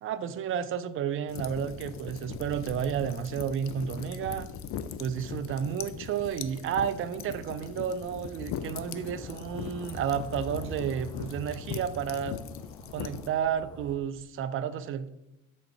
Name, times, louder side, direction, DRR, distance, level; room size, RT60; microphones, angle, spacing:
voice 1, 0.0-4.5 5.0-12.4 12.9-15.1, right 8 dB, 30° right, 12 dB, 0.5 m, -31 dB
sound 1, 1.3-13.3, left 9 dB, 35° left, 0.5 m, -40 dB
sound 2, 1.3-14.3, right 1 dB, 90° right, 1.5 m, -51 dB
sound 3, 7.9-13.9, left 1 dB, 10° left, 1.1 m, -46 dB
6.2 x 3.8 x 5.5 m, 0.86 s
figure-of-eight pair, 65°, 42 cm